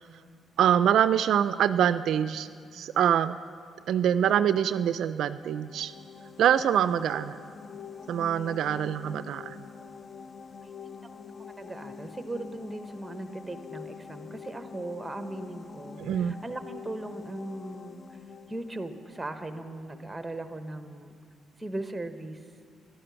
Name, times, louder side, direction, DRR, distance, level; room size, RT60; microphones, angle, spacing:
voice 1, 0.6-3.4 3.9-5.9 6.4-7.4 8.1-9.6 16.0-16.3, right 9 dB, 75° right, 13 dB, 0.3 m, -25 dB
sound 1, 5.2-19.9, left 6 dB, 45° left, 0.4 m, -45 dB
voice 2, 11.5-18.2 18.5-21.2 21.6-22.4, right 2 dB, 10° right, 8 dB, 0.9 m, -38 dB
11.5 x 11.0 x 6.9 m, 2.2 s
cardioid pair, 90°, 0 cm